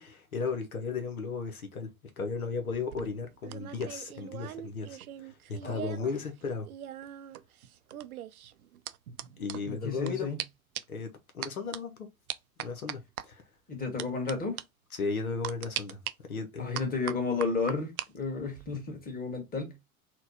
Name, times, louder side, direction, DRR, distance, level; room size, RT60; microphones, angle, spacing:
voice 1, 0.0-1.9 2.2-6.7 9.4-10.3 10.9-12.1 12.6-13.4 14.9-16.0 16.3-16.9, left 4 dB, 85° left, 0.8 m, -35 dB
sound 1, 2.7-6.1 6.4-10.1 10.4-10.5 10.7-11.0 11.4-11.8 12.3-13.2 14.0-14.3 14.6-14.7 15.4-16.1 16.7-18.1 18.4-18.8, right 12 dB, 85° right, 0.5 m, -40 dB
voice 2, 5.6-6.1 9.6-10.4 13.7-14.6 16.6-19.7, left 4 dB, 20° left, 1.7 m, -32 dB
4.2 x 2.2 x 4.1 m
figure-of-eight pair, 80°, 42 cm